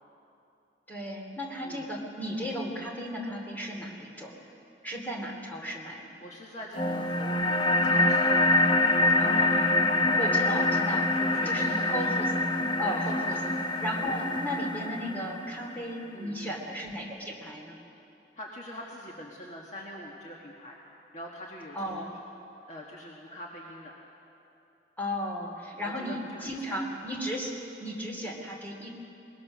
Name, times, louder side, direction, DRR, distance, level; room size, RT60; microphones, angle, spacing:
voice 1, 0.9-4.3 4.8-6.1 9.2-9.8 10.2-11.1 11.5-12.2 12.8-13.4 13.8-17.8 21.7-22.1 25.0-28.9, equal, 10° left, 0 dB, 2.6 m, -35 dB
voice 2, 6.2-8.4 9.0-9.5 9.9-10.2 11.1-12.1 12.9-13.5 14.0-14.1 16.1-16.5 18.3-20.8 21.1-22.0 22.7-24.0 25.5-26.9, equal, 40° left, -2 dB, 1.6 m, -44 dB
sound 1, 6.8-15.8, left 2 dB, 25° left, 0.8 m, -25 dB
21.0 x 20.0 x 6.2 m, 2.9 s
head